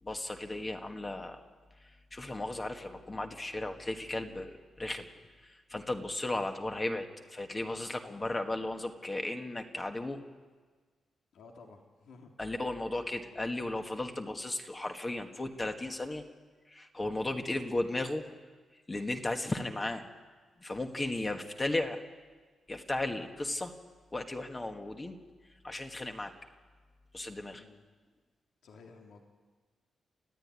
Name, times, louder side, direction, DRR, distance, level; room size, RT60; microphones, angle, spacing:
voice 1, 0.0-1.4 1.8-5.1 5.4-10.2 12.4-16.2 16.7-18.2 18.9-20.0 20.6-22.0 22.7-23.7 24.1-25.2 25.6-26.3 27.1-27.6, left 2 dB, 20° left, 5 dB, 1.6 m, -35 dB
voice 2, 11.3-12.3 27.5-27.8 28.6-29.2, left 4 dB, 75° left, 2 dB, 2.7 m, -54 dB
28.0 x 15.5 x 9.7 m, 1.5 s
wide cardioid pair, 150°, 0 cm